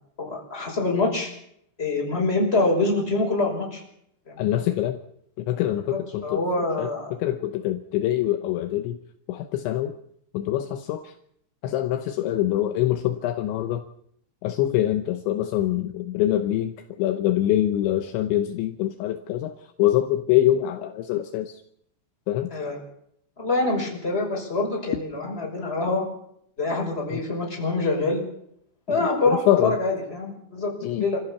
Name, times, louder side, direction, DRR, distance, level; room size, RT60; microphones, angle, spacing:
voice 1, 0.2-1.3 1.8-3.8 4.3-4.5 5.9-7.1 22.5-22.8 23.4-26.0 26.6-28.2 28.9-31.2, left 2 dB, 10° left, -1 dB, 5.6 m, -25 dB
voice 2, 4.4-5.0 5.4-6.4 6.8-9.0 9.3-10.0 10.3-11.1 11.6-13.8 14.4-19.5 19.8-21.6 22.3-22.5 27.1-27.2 28.9-29.8 30.8-31.1, left 13 dB, 75° left, 7 dB, 3.1 m, -24 dB
26.0 x 15.0 x 7.1 m, 0.72 s
omnidirectional pair, 5.6 m